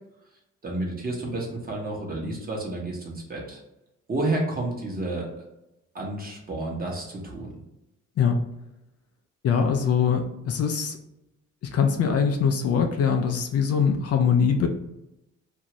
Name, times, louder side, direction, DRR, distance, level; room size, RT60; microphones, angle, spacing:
voice 1, 0.6-3.6 4.1-5.3 5.9-7.5, right 2 dB, 30° right, -2 dB, 1.0 m, -30 dB
voice 2, 9.4-11.0 11.6-14.7, left 6 dB, 55° left, 5 dB, 0.5 m, -22 dB
2.7 x 2.4 x 3.0 m, 0.90 s
cardioid pair, 90°, 30 cm